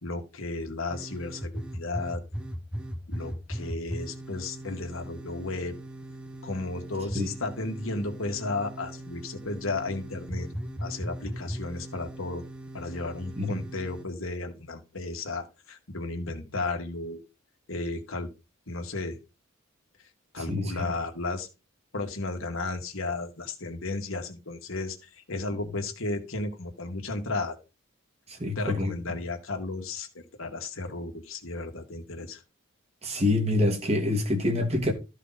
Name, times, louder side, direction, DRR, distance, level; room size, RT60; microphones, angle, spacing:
voice 1, 0.0-2.2 3.1-5.8 6.4-10.5 10.8-12.4 12.7-17.2 17.7-18.3 18.7-19.2 20.3-21.5 21.9-27.6 28.6-32.4, left 3 dB, 75° left, 2.0 m, -34 dB
sound 1, 0.9-14.0, equal, 5° right, 0.9 m, -39 dB
voice 2, 20.5-20.9 28.3-28.9 33.0-34.9, left 2 dB, 30° right, 1.8 m, -26 dB
13.5 x 5.1 x 4.2 m
head